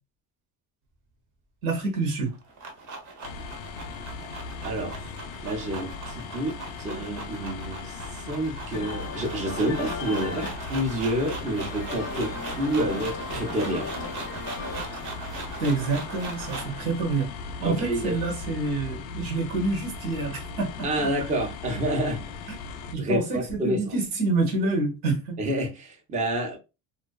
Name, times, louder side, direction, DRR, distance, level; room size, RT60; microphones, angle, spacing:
voice 1, 1.6-2.3 15.6-17.3 17.6-21.1 22.5-22.6 22.9-25.4, right 3 dB, 85° right, 1.1 m, -27 dB
sound 1, 2.2-16.8, right 3 dB, 45° right, 0.8 m, -39 dB
sound 2, 3.2-23.0, left 4 dB, 80° left, 0.5 m, -38 dB
voice 2, 4.6-5.1 5.4-13.9 17.6-18.1 20.8-22.2 23.0-24.0 25.4-26.6, right 1 dB, 15° right, 0.5 m, -29 dB
sound 3, 8.7-18.1, left 4 dB, 35° left, 0.5 m, -39 dB
2.4 x 2.2 x 2.2 m
cardioid pair, 125°, 43 cm